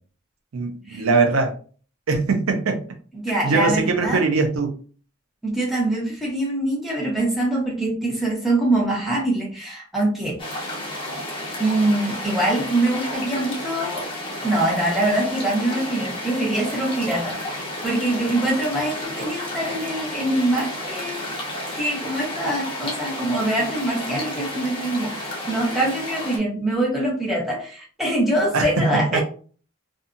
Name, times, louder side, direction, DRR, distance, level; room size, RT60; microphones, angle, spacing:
voice 1, 0.5-1.5 2.1-2.8 3.4-4.8 28.5-29.2, right 4 dB, 85° right, 0.6 m, -21 dB
voice 2, 3.1-4.3 5.4-10.4 11.6-14.1 14.4-21.3 21.8-29.2, right 1 dB, ahead, 0.9 m, -24 dB
sound 1, 10.4-26.4, left 1 dB, 25° left, 0.7 m, -32 dB
2.7 x 2.4 x 2.5 m
head